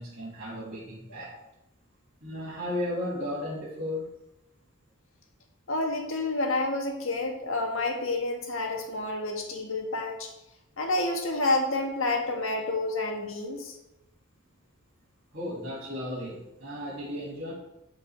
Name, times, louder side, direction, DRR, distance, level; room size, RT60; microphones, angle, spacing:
voice 1, 0.0-1.4 2.2-4.1 15.3-17.5, left 1 dB, 45° right, -10 dB, 3.1 m, -35 dB
voice 2, 5.7-10.3 10.8-13.8, left 2 dB, 60° left, 2 dB, 1.8 m, -29 dB
12.0 x 5.4 x 5.0 m, 0.90 s
head